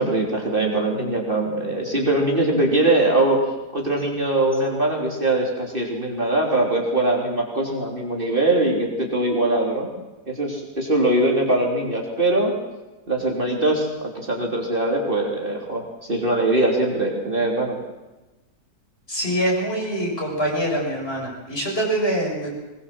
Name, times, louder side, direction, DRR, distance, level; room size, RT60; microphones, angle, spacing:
voice 1, 0.0-9.9 10.3-12.5 13.1-17.8, right 2 dB, 35° right, -1 dB, 3.7 m, -22 dB
voice 2, 19.1-22.5, right 1 dB, 35° left, -2 dB, 7.5 m, -24 dB
22.0 x 20.5 x 7.7 m, 1.1 s
omnidirectional pair, 1.7 m